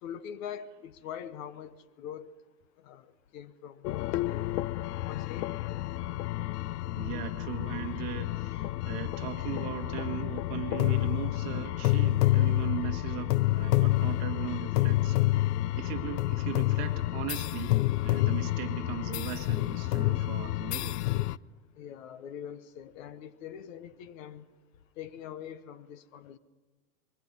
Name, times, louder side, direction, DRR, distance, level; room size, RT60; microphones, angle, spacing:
voice 1, 0.0-2.3 2.8-3.1 3.3-4.5 5.0-5.6 21.8-24.5 25.0-26.4, left 9 dB, 55° left, 1.1 m, -43 dB
sound 1, 3.8-21.4, left 16 dB, 80° left, 0.6 m, -29 dB
voice 2, 6.9-15.2 15.8-17.8 18.0-21.0, right 13 dB, 35° right, 1.7 m, -39 dB
26.0 x 22.0 x 5.4 m
supercardioid pair, 155°, 47 cm